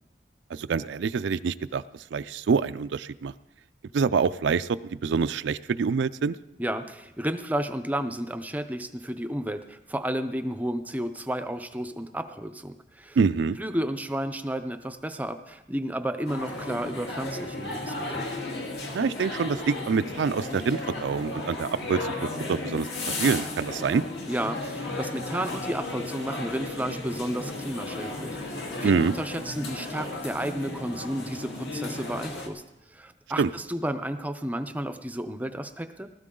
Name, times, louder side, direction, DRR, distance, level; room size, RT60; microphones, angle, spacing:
voice 1, 0.5-1.8 2.1-3.3 3.9-6.4 13.2-13.6 18.9-24.0 28.8-29.1 33.4-33.5, right 5 dB, 80° right, 13 dB, 0.4 m, -26 dB
voice 2, 6.6-13.2 13.6-18.3 24.3-32.6 32.9-36.1, right 1 dB, 10° right, 9 dB, 0.5 m, -32 dB
sound 1, 16.3-32.5, left 2 dB, 65° left, 2.0 m, -34 dB
19.0 x 13.0 x 3.8 m, 0.97 s
head